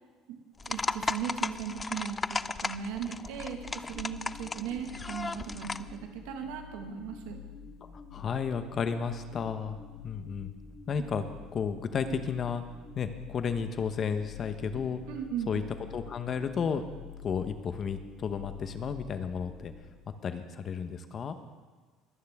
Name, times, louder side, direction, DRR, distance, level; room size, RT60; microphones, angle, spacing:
sound 1, 0.6-5.9, left 4 dB, 20° left, 0.4 m, -35 dB
voice 1, 0.6-7.4 12.0-12.1 15.1-15.5, right 8 dB, 85° right, 4 dB, 1.7 m, -37 dB
sound 2, 3.3-19.8, left 7 dB, 55° left, 2.1 m, -48 dB
voice 2, 7.9-9.8 10.0-10.5 10.9-11.2 11.5-12.6 12.9-15.0 15.5-15.6 15.9-16.8 17.2-19.7 20.2-21.4, left 6 dB, 40° left, 9 dB, 0.9 m, -32 dB
23.0 x 9.3 x 3.6 m, 1.4 s
cardioid pair, 115°, 0 cm